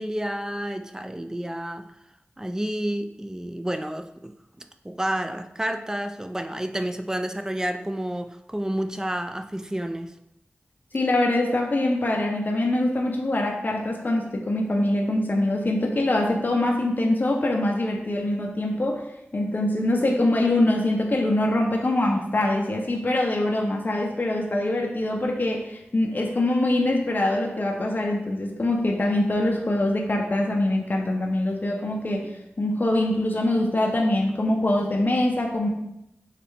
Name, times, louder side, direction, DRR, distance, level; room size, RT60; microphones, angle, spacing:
voice 1, 0.0-1.9 2.4-10.1, right 1 dB, 15° right, 9 dB, 0.3 m, -30 dB
voice 2, 10.9-19.0 19.3-32.3 32.6-35.7, left 1 dB, 45° left, 0 dB, 0.6 m, -24 dB
5.0 x 3.2 x 3.3 m, 0.84 s
wide cardioid pair, 75°, 4 cm